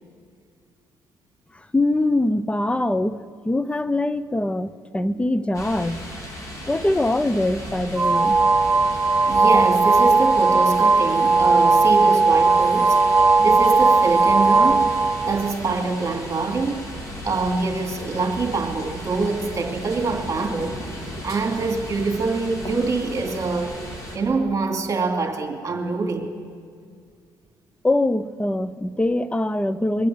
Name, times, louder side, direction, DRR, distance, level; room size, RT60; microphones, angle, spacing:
voice 1, 1.7-3.2 3.4-6.0 6.7-8.4 27.8-30.1, left 1 dB, 15° left, 15 dB, 0.7 m, -23 dB
sound 1, 5.5-24.2, equal, 40° left, 3.9 m, -36 dB
sound 2, 8.0-15.5, right 3 dB, 15° right, 0.3 m, -17 dB
voice 2, 9.3-13.0 13.4-14.9 15.3-16.9 17.2-20.7 21.2-23.7 24.1-26.3, right 3 dB, 35° right, 2 dB, 2.8 m, -25 dB
22.0 x 8.4 x 7.8 m, 2.1 s
supercardioid pair, 70°, 8 cm